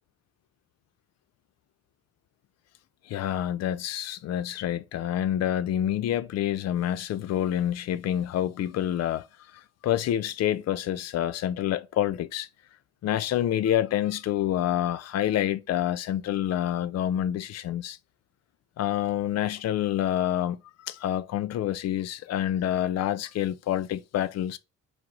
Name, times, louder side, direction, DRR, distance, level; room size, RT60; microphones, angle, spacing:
voice 1, 3.1-9.2 9.8-12.5 13.0-18.0 18.8-24.6, left 11 dB, 60° left, 0.4 m, -27 dB
4.7 x 2.0 x 3.8 m
cardioid pair, 90°, 30 cm